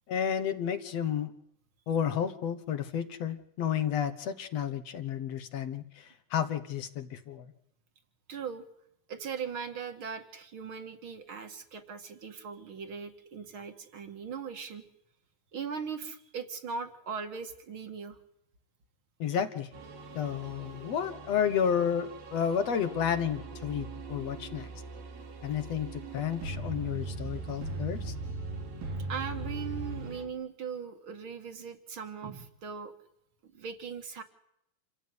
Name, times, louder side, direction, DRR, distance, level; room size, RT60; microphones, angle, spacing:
voice 1, 0.1-1.3 1.9-7.5 19.2-19.7 20.2-24.7 25.4-28.1, left 8 dB, 60° left, 11 dB, 2.1 m, -31 dB
voice 2, 8.3-8.7 9.1-14.9 15.5-18.2 19.3-19.4 29.1-32.9 33.4-34.2, right 6 dB, 45° right, 8 dB, 2.3 m, -39 dB
sound 1, 19.7-30.3, right 3 dB, 90° right, 4.8 m, -40 dB
28.0 x 15.0 x 9.7 m, 0.77 s
omnidirectional pair, 3.9 m